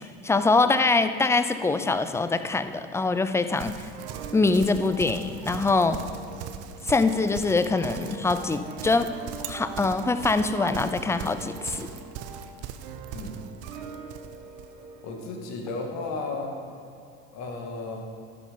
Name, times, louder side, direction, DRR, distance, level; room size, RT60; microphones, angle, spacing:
voice 1, 0.2-3.9 4.3-6.0 6.8-9.1 9.4-11.9, left 3 dB, 10° left, 10 dB, 0.5 m, -24 dB
Livestock farm animals working animals, 3.5-14.7, right 9 dB, 55° right, 0.7 m, -40 dB
sound 1, 3.9-15.2, right 5 dB, 70° right, 1.1 m, -43 dB
voice 2, 15.0-16.5 17.3-18.0, left 3 dB, 60° left, 1 dB, 1.8 m, -34 dB
11.0 x 6.4 x 5.2 m, 2.4 s
hypercardioid pair, 80°, 31 cm